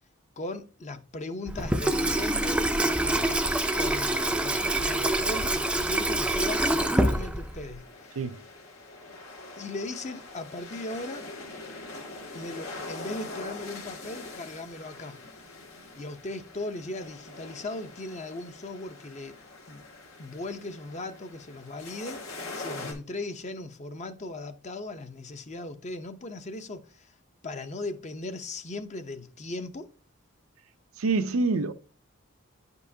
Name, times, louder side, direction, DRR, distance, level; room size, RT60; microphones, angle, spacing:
voice 1, 0.4-3.5 3.7-8.2 9.6-11.3 12.3-15.2 15.9-19.4 19.7-19.8 20.2-22.2 22.5-27.1 27.4-29.9, left 2 dB, 35° left, 0.7 m, -38 dB
Water tap faucet / Sink (filling or washing), 1.5-7.7, right 1 dB, 5° right, 0.4 m, -26 dB
sound 1, 6.2-22.9, left 2 dB, 90° left, 2.6 m, -44 dB
voice 2, 31.0-31.7, right 3 dB, 85° right, 0.6 m, -26 dB
10.0 x 5.4 x 2.7 m
head